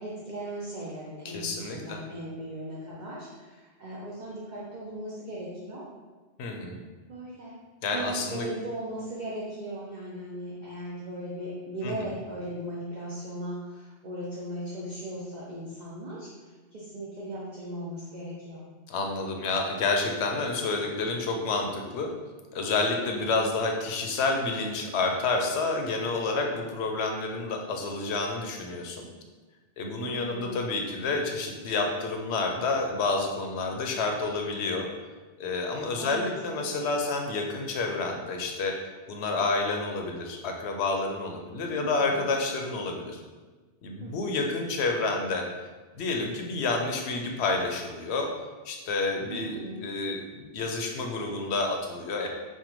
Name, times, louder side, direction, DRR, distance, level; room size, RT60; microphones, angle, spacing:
voice 1, 0.0-5.9 7.1-7.5 7.9-16.3 16.7-18.6 30.0-30.6 36.0-36.9 41.7-42.3 44.0-44.5 49.3-49.8, right 1 dB, 50° right, -6 dB, 0.7 m, -38 dB
voice 2, 1.2-2.0 6.4-6.8 7.8-8.5 11.8-12.1 18.9-22.1 22.5-29.1 29.8-34.9 35.4-38.7 39.1-43.2 43.8-45.4 45.9-48.3 48.6-52.3, left 3 dB, 85° left, 2 dB, 0.9 m, -29 dB
5.4 x 2.2 x 3.0 m, 1.3 s
omnidirectional pair, 1.1 m